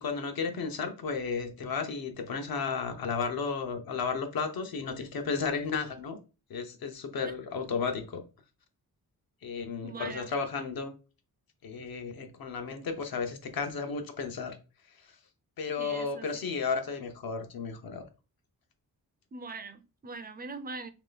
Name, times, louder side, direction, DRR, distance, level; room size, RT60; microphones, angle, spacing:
voice 1, 0.0-6.2 6.5-8.2 9.4-10.9 11.6-14.6 15.6-18.0, left 5 dB, 65° left, 0.8 m, -33 dB
voice 2, 9.8-10.3 15.8-16.3 19.3-20.9, right 3 dB, 25° right, 0.4 m, -41 dB
3.2 x 2.9 x 3.9 m
wide cardioid pair, 130°, 38 cm